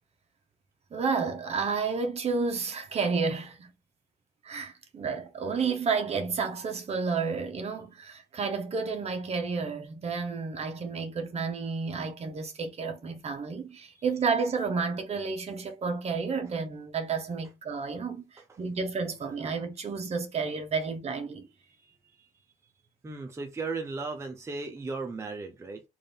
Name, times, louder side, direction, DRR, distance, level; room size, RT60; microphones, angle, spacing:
voice 1, 0.9-3.7 4.4-21.5, right 5 dB, 40° right, 0.9 m, -31 dB
voice 2, 21.7-22.3 23.0-25.8, right 3 dB, 15° right, 0.6 m, -37 dB
3.7 x 2.6 x 3.4 m
cardioid pair, 110°, 17 cm